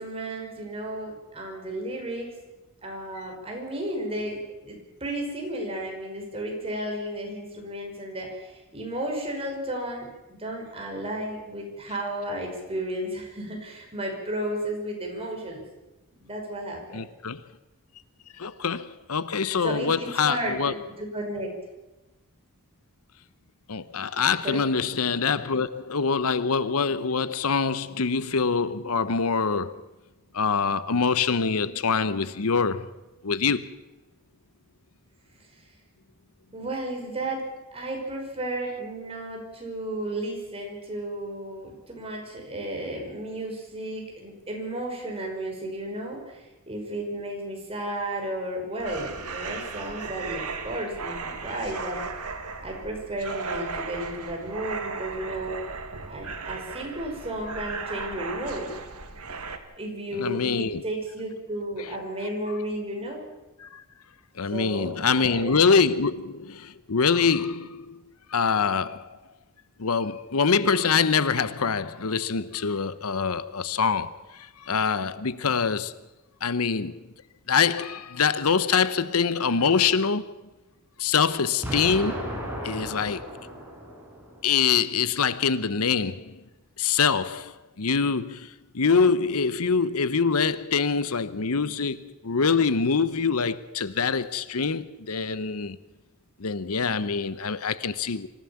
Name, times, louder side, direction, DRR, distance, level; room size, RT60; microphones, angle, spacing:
voice 1, 0.0-2.3 2.8-15.6 16.2-17.0 19.6-21.5 24.4-24.6 36.5-37.4 37.7-52.0 52.6-55.6 56.1-58.7 59.8-63.3 64.5-65.5, right 1 dB, 25° right, 5.6 m, -33 dB
voice 2, 16.9-17.4 18.3-20.7 23.7-29.8 30.3-32.9 33.2-33.8 60.1-60.8 61.8-61.9 63.6-63.8 64.4-68.0 68.3-69.1 69.8-75.9 76.4-77.0 77.5-80.3 81.0-82.4 82.6-83.3 84.4-86.4 86.8-95.8 96.4-98.3, left 5 dB, 75° left, 0.9 m, -25 dB
sound 1, 48.8-59.6, right 4 dB, 85° right, 2.0 m, -36 dB
Explosion, 81.6-84.6, equal, 10° right, 5.3 m, -35 dB
25.0 x 15.0 x 7.2 m
head